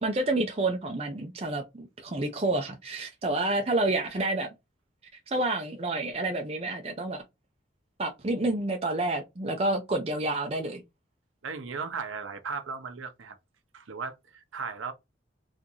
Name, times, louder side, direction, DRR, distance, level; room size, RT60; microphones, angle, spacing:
voice 1, 0.0-4.5 5.3-7.2 8.0-10.8, right 2 dB, 30° right, 0.5 m, -29 dB
voice 2, 11.4-13.4 13.7-14.9, right 5 dB, 85° right, 0.8 m, -36 dB
3.7 x 2.5 x 2.8 m
head